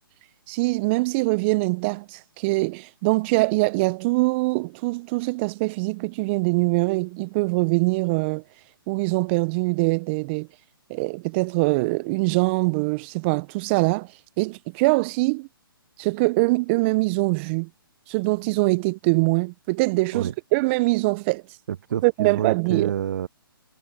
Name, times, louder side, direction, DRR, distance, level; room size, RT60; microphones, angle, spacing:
voice 1, 0.5-8.4 8.9-10.5 10.9-14.1 14.4-15.5 16.0-17.7 18.1-21.4 22.0-22.9, right 26 dB, 30° right, 1.0 m, -23 dB
voice 2, 21.7-23.3, right 9 dB, 55° right, 0.4 m, -27 dB
figure-of-eight pair, 135°, 12 cm